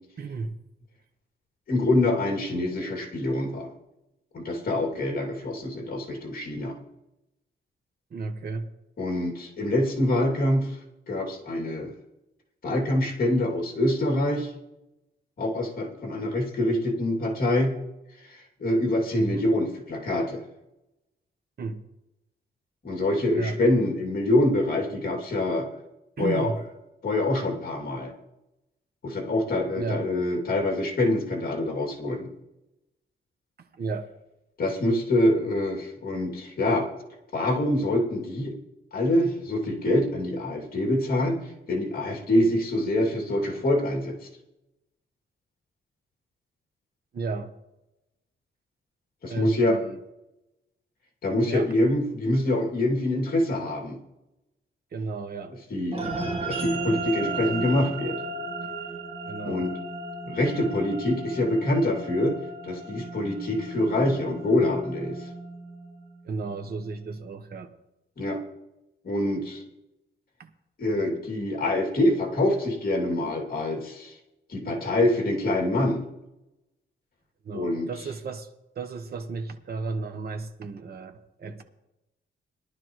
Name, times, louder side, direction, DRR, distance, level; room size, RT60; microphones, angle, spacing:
voice 1, 0.2-0.5 8.1-8.7 19.1-19.4 21.6-21.8 23.3-23.6 26.2-26.6 29.7-30.1 33.6-34.1 47.1-47.5 49.3-50.0 51.5-51.7 54.9-55.5 59.2-59.7 66.2-67.7 70.4-70.5 77.4-78.5 78.7-81.6, right 4 dB, 50° right, 6 dB, 1.1 m, -33 dB
voice 2, 1.7-3.7 4.3-6.7 9.0-10.8 11.1-11.9 12.6-14.5 15.4-17.8 18.2-20.4 22.8-25.7 26.2-26.5 27.0-28.1 29.0-32.3 34.6-36.9 37.3-38.5 38.9-41.4 41.7-44.2 49.2-49.8 51.2-54.0 55.7-56.0 56.4-58.1 59.5-59.7 60.2-62.4 62.6-65.3 68.2-68.4 69.0-69.6 70.8-74.1 74.5-76.0 77.5-77.9, left 1 dB, 45° left, 0 dB, 2.6 m, -25 dB
sound 1, 55.9-66.6, right 2 dB, 30° right, 1.4 m, -35 dB
18.5 x 11.5 x 3.1 m, 0.93 s
wide cardioid pair, 135°, 20 cm